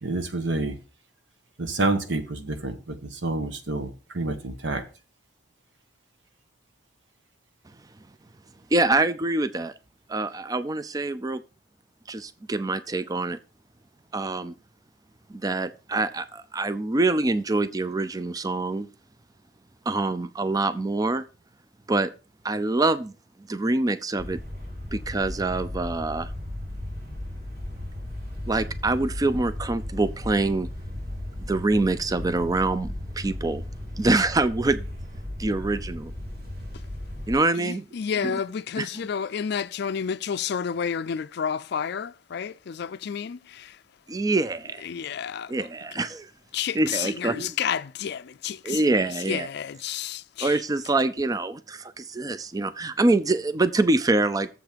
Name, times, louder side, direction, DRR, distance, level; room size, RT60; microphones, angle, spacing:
voice 1, 0.0-0.8 1.6-4.8, right 2 dB, 75° right, 1.3 m, -28 dB
voice 2, 8.7-9.7 10.1-11.4 12.1-13.4 14.1-14.5 15.3-18.9 19.9-21.2 21.9-22.1 22.4-23.1 23.5-24.4 24.9-26.3 28.5-30.7 31.5-33.6 34.0-34.9 35.4-36.1 37.3-37.9 38.2-38.4 38.8-39.1 44.1-44.9 45.5-46.3 46.7-47.6 48.6-49.5 50.4-54.5, right 2 dB, 20° right, 0.4 m, -25 dB
sound 1, 24.2-37.3, left 1 dB, 60° right, 3.3 m, -35 dB
voice 3, 37.6-43.7 44.8-45.5 46.5-48.8 49.3-50.5, left 7 dB, 60° left, 0.4 m, -30 dB
7.3 x 5.8 x 5.1 m
head